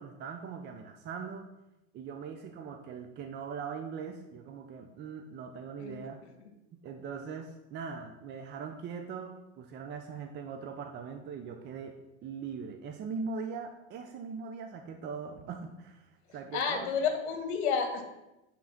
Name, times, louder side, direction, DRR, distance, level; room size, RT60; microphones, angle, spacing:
voice 1, 0.0-1.5 1.9-6.2 6.8-16.9, right 5 dB, 30° right, 5 dB, 0.6 m, -41 dB
voice 2, 16.5-18.0, left 6 dB, 75° left, 4 dB, 1.6 m, -30 dB
8.6 x 3.8 x 5.8 m, 0.98 s
supercardioid pair, 130°, 34 cm